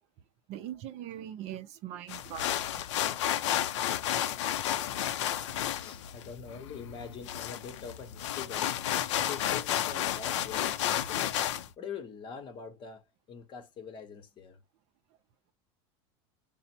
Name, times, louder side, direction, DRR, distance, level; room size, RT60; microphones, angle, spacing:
voice 1, 0.5-2.8, right 11 dB, 45° right, 0.5 m, -41 dB
sound 1, 2.1-11.7, left 11 dB, 90° left, 0.5 m, -32 dB
voice 2, 5.7-11.3 11.8-14.6, left 6 dB, 35° left, 0.8 m, -44 dB
4.0 x 2.1 x 4.2 m
supercardioid pair, 135°, 15 cm